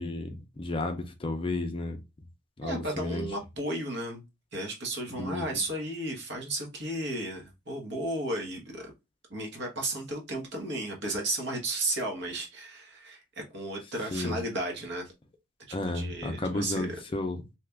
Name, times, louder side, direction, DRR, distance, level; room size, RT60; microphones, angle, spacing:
voice 1, 0.0-2.0 2.6-3.3 5.2-5.6 14.1-14.4 15.7-17.4, left 2 dB, 25° left, 0.5 m, -32 dB
voice 2, 2.6-4.2 4.5-8.9 9.3-15.1 15.7-17.0, right 1 dB, 55° right, 1.0 m, -34 dB
2.8 x 2.4 x 3.4 m
head